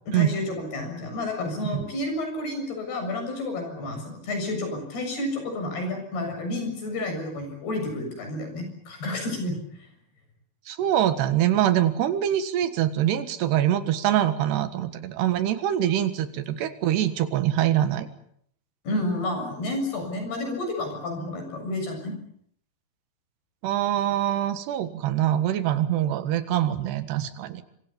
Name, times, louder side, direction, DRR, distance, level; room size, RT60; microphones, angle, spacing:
voice 1, 0.1-9.6 18.9-22.1, left 1 dB, 70° left, 5 dB, 9.1 m, -30 dB
voice 2, 10.7-18.1 23.6-27.6, right 11 dB, 80° right, 10 dB, 3.7 m, -24 dB
26.0 x 25.5 x 7.1 m, 0.69 s
omnidirectional pair, 4.7 m